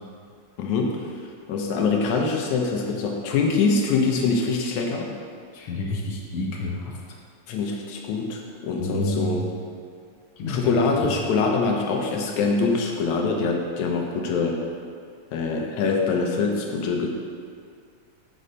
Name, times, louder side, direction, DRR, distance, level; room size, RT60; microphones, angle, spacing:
voice 1, 0.6-1.1 1.5-5.2 7.5-9.5 10.5-14.6 15.3-17.1, left 4 dB, 85° left, 1 dB, 2.2 m, -24 dB
voice 2, 5.5-7.0 8.8-9.4 10.4-10.7, left 2 dB, 65° left, -1 dB, 1.6 m, -29 dB
8.2 x 6.4 x 4.1 m, 2.2 s
omnidirectional pair, 3.3 m